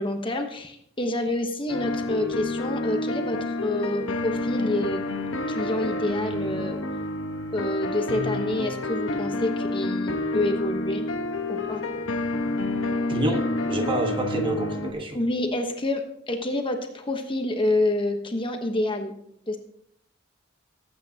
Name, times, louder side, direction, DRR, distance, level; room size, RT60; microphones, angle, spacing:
voice 1, 0.0-5.1 5.5-6.8 7.5-11.0 11.5-11.8 15.1-19.1 19.5-19.6, left 1 dB, 25° left, 4 dB, 1.1 m, -28 dB
sound 1, 1.7-14.9, left 2 dB, 70° left, 1.2 m, -29 dB
voice 2, 13.1-15.2, right 1 dB, 25° right, 4 dB, 1.3 m, -27 dB
19.0 x 8.5 x 2.9 m, 0.70 s
head